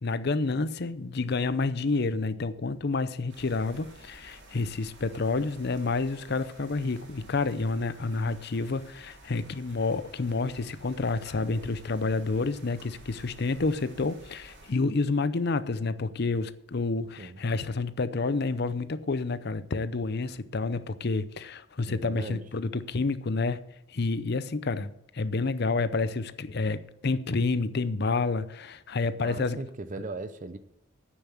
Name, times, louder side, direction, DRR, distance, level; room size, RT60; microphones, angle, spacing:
voice 1, 0.0-23.6 23.9-29.6 30.0-30.1, left 3 dB, 50° left, 0.6 m, -29 dB
sound 1, 3.3-14.7, right 2 dB, 55° right, 2.8 m, -52 dB
voice 2, 21.9-22.5 29.2-30.6, right 3 dB, 35° right, 0.6 m, -38 dB
9.4 x 7.1 x 8.1 m
head